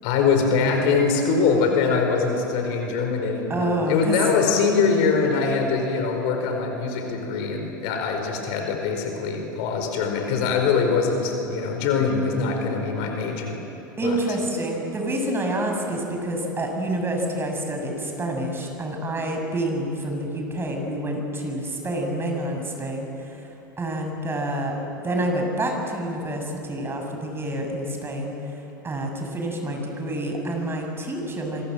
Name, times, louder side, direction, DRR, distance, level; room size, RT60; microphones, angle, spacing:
voice 1, 0.0-13.6 14.0-14.2, left 5 dB, 55° left, 4 dB, 4.9 m, -23 dB
voice 2, 3.5-4.2 14.0-23.5 23.8-24.8 25.0-28.3 28.8-31.6, right 1 dB, 20° right, 2 dB, 6.8 m, -28 dB
27.0 x 24.5 x 7.8 m, 3.0 s
figure-of-eight pair, 80°, 11 cm